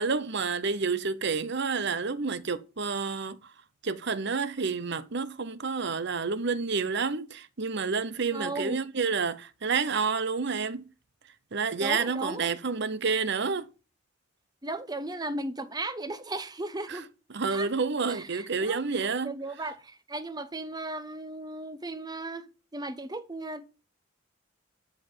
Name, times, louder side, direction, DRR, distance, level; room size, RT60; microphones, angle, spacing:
voice 1, 0.0-3.4 3.8-10.9 11.5-13.7 16.9-17.0 17.3-19.4, right 5 dB, 60° right, 0.9 m, -29 dB
voice 2, 8.3-8.8 11.8-12.5 14.6-17.1 17.5-17.7 18.1-22.5 22.7-23.6, right 2 dB, 20° right, 0.9 m, -36 dB
12.5 x 5.6 x 7.6 m
head